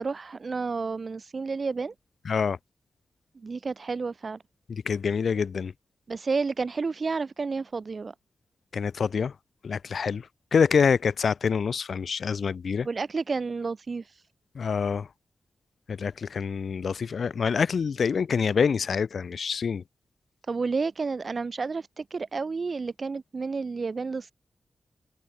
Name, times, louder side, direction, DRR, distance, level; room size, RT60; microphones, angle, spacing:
voice 1, 0.0-1.9 3.3-4.4 6.1-8.1 12.8-14.0 20.5-24.3, right 4 dB, 40° right, 5.7 m, -30 dB
voice 2, 2.2-2.6 4.7-5.7 8.7-9.3 9.6-12.9 14.5-15.1 15.9-19.8, left 6 dB, 60° left, 1.6 m, -26 dB
wide cardioid pair, 170°, 0 cm